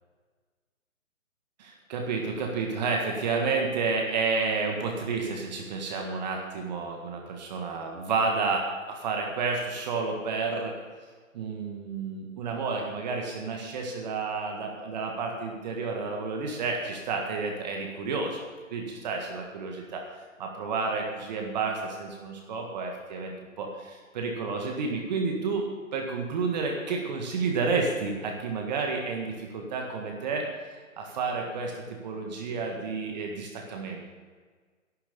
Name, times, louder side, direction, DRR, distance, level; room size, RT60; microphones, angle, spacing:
voice 1, 1.6-10.8 11.3-18.4 18.7-20.0 20.4-25.7 25.9-30.5 31.0-34.0, right 4 dB, 30° right, 1 dB, 1.8 m, -30 dB
11.5 x 10.5 x 7.0 m, 1.5 s
figure-of-eight pair, 140°, 40 cm